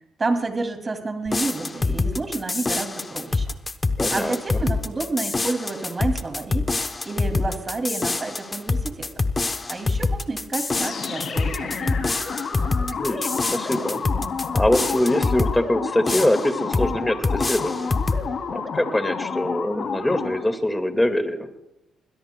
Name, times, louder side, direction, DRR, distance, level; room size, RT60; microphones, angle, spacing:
voice 1, 0.2-3.5 4.1-6.7 7.0-9.1 9.7-12.1, right 3 dB, 30° right, 5 dB, 2.5 m, -29 dB
sound 1, 1.3-15.6 16.1-16.9 17.2-18.3, left 3 dB, 25° left, 0.9 m, -25 dB
voice 2, 4.0-4.6 12.8-14.0 14.5-17.9 18.5-21.5, left 1 dB, 10° left, 7 dB, 1.9 m, -24 dB
sound 2, 10.7-20.6, left 5 dB, 60° left, 2.8 m, -30 dB
21.5 x 21.0 x 2.3 m, 0.88 s
cardioid pair, 90°, 0 cm